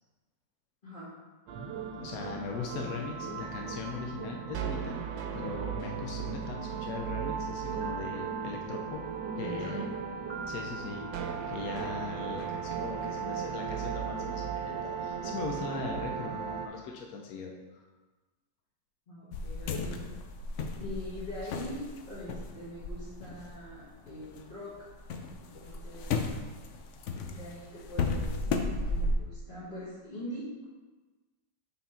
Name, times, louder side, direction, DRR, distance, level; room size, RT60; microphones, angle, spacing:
sound 1, 1.5-16.7, right 6 dB, 85° right, 1.3 m, -36 dB
voice 1, 1.9-5.0 5.3-9.1 9.4-9.9 10.5-17.9, left 4 dB, 65° left, 0 dB, 1.0 m, -40 dB
voice 2, 9.3-9.9 19.1-20.0 20.8-24.9 25.4-26.1 27.2-30.6, left 1 dB, 30° left, -11 dB, 1.5 m, -43 dB
sound 2, 19.3-24.4 24.8-29.2, left 3 dB, 90° left, 0.6 m, -34 dB
5.6 x 4.1 x 4.3 m, 1.3 s
omnidirectional pair, 1.9 m